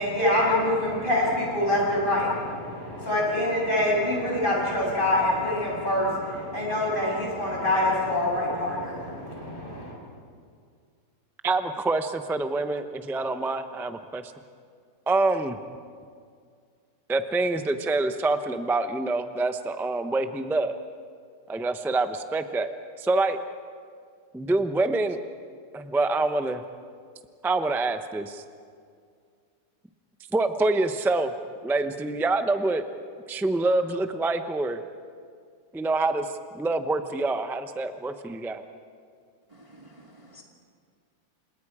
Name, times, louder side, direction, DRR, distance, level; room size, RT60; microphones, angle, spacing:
voice 1, 0.0-9.9, left 1 dB, 30° left, -4 dB, 8.2 m, -25 dB
voice 2, 11.4-14.2 15.1-15.6 17.1-20.8 21.5-22.7 23.0-23.4 24.3-25.2 25.7-26.6 27.4-28.4 30.3-31.3 31.6-32.8 33.3-34.8 35.7-36.3 36.5-38.6, right 2 dB, 5° right, 8 dB, 0.4 m, -26 dB
voice 3, 39.5-40.4, right 1 dB, 20° right, 0 dB, 2.0 m, -51 dB
29.5 x 27.0 x 4.9 m, 2.2 s
omnidirectional pair, 1.8 m